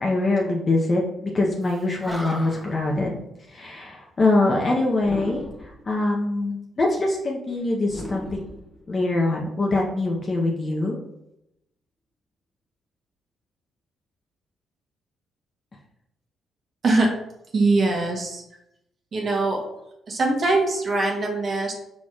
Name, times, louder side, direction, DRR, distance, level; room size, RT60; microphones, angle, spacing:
voice 1, 0.0-3.2 3.5-5.4 5.9-8.4 8.9-11.0, left 2 dB, 35° left, -2 dB, 0.7 m, -23 dB
Animal, 1.7-1.8 2.0-2.8 5.0-5.8 7.9-9.2, equal, ahead, 0.8 m, -36 dB
voice 2, 17.5-18.4 19.1-19.6 20.1-21.7, right 2 dB, 50° right, 0 dB, 0.9 m, -22 dB
4.6 x 4.3 x 2.4 m, 0.83 s
cardioid pair, 90°, 0 cm